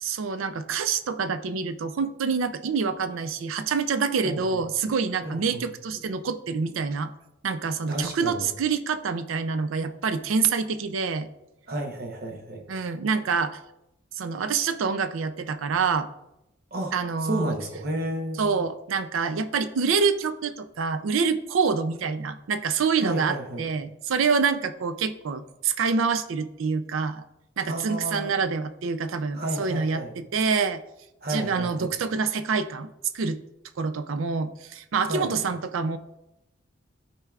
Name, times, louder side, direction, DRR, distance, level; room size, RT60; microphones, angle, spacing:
voice 1, 0.0-7.1 7.4-11.3 12.7-13.6 14.1-16.1 16.9-17.6 18.4-27.2 27.6-30.8 31.3-33.4 33.8-36.0, right 5 dB, 80° right, 10 dB, 0.4 m, -26 dB
voice 2, 4.2-4.6 5.2-5.6 7.9-8.5 11.7-12.6 16.7-16.9 17.2-18.5 23.0-23.7 27.7-28.3 29.3-30.2 31.2-31.9 35.0-35.3, right 1 dB, 50° right, 3 dB, 0.9 m, -32 dB
12.0 x 4.5 x 2.4 m, 0.86 s
head